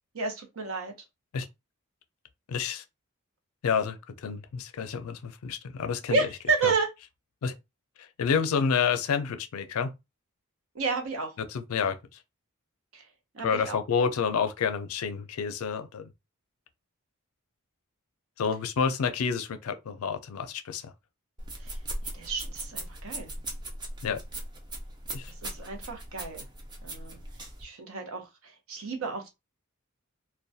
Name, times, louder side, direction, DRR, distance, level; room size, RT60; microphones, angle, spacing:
voice 1, 0.1-0.9 6.1-6.9 10.7-11.3 12.9-13.0 13.3-13.8 21.6-21.8 22.1-23.3 25.4-26.4 26.8-27.2 27.6-29.3, right 4 dB, 65° right, 0.7 m, -31 dB
voice 2, 2.5-2.8 3.6-6.2 6.6-6.7 7.4-7.5 8.2-9.9 11.5-12.0 13.4-16.0 18.4-20.9 24.0-24.2 25.1-25.3, left 6 dB, 75° left, 0.4 m, -29 dB
sound 1, 21.4-27.6, right 1 dB, 20° right, 0.4 m, -39 dB
2.3 x 2.1 x 2.6 m
head